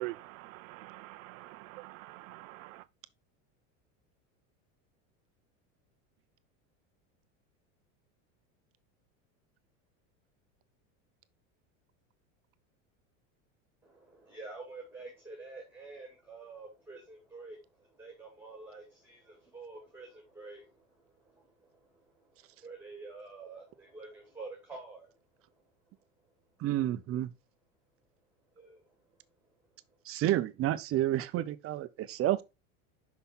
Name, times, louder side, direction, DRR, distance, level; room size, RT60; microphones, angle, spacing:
voice 1, 0.0-2.8, right 20 dB, 85° right, 0.5 m, -44 dB
voice 2, 13.8-25.1 28.6-28.9, right 3 dB, 5° right, 2.1 m, -48 dB
voice 3, 26.6-27.3 30.1-32.4, right 13 dB, 35° right, 0.6 m, -30 dB
5.7 x 5.6 x 4.1 m
supercardioid pair, 120°, 39 cm